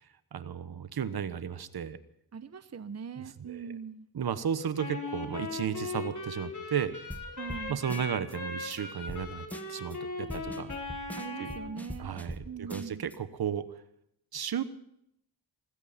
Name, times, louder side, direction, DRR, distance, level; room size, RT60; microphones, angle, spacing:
voice 1, 0.3-2.0 3.2-3.7 4.1-6.9 7.7-10.7 11.4-11.5 12.0-13.7 14.3-14.6, right 8 dB, 65° right, 13 dB, 1.2 m, -34 dB
voice 2, 2.3-4.1 7.4-7.8 10.2-10.6 11.1-12.1 12.4-13.1, right 6 dB, 40° right, 12 dB, 0.9 m, -41 dB
Wind instrument woodwind instrument, 4.8-11.7, left 3 dB, 50° left, 3.7 m, -39 dB
sound 1, 7.1-7.2 7.5-7.6 7.9-8.4 8.7-8.8 9.1-9.2 9.5-10.0 10.3-12.4 12.7-13.2, equal, 5° left, 1.6 m, -41 dB
19.5 x 16.0 x 4.3 m, 0.73 s
cardioid pair, 70°, 40 cm